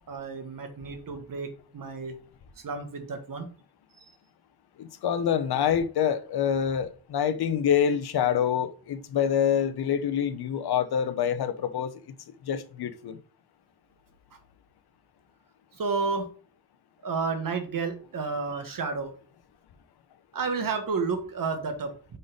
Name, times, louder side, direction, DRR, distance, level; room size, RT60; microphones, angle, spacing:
voice 1, 0.1-2.2 2.6-3.5 15.8-16.3 17.0-19.1 20.3-22.2, right 4 dB, 60° right, 1.4 m, -31 dB
voice 2, 4.8-11.9 12.5-13.2, left 8 dB, 80° left, 0.8 m, -26 dB
5.3 x 4.0 x 5.0 m
cardioid pair, 100°, 37 cm